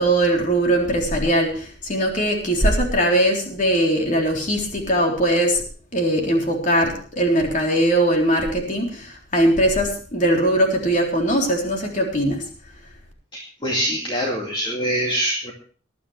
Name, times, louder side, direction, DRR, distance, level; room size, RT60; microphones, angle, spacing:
voice 1, 0.0-5.6 5.9-12.4, right 1 dB, 45° left, 1 dB, 3.8 m, -20 dB
voice 2, 13.3-15.5, equal, 25° left, -1 dB, 2.4 m, -24 dB
20.0 x 12.5 x 3.3 m, 0.42 s
head